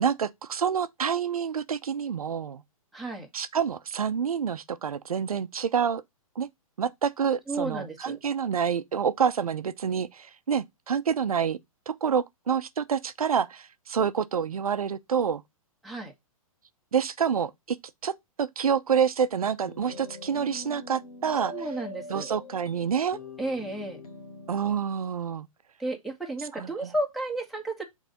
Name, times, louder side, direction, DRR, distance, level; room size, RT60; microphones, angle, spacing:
voice 1, 0.0-2.6 3.3-6.0 6.4-6.5 6.8-11.6 11.9-15.4 16.9-17.8 18.0-21.5 22.1-23.2 24.5-25.5 26.5-26.9, right 7 dB, 80° right, 0.8 m, -27 dB
voice 2, 2.9-3.3 7.5-8.2 15.8-16.1 21.5-22.3 23.4-24.0 25.8-27.8, right 2 dB, ahead, 1.7 m, -32 dB
sound 1, 19.6-24.9, left 2 dB, 85° left, 2.2 m, -43 dB
6.1 x 4.1 x 5.2 m
hypercardioid pair, 130°, 19 cm